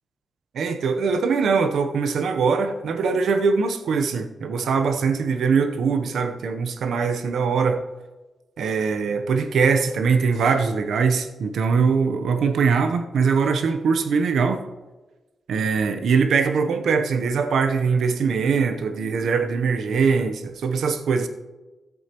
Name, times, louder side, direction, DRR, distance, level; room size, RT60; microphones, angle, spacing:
voice 1, 0.5-7.8 8.6-14.6 15.5-21.3, right 5 dB, 80° right, 7 dB, 0.8 m, -22 dB
14.5 x 8.2 x 3.0 m, 1.2 s
wide cardioid pair, 130°, 0 cm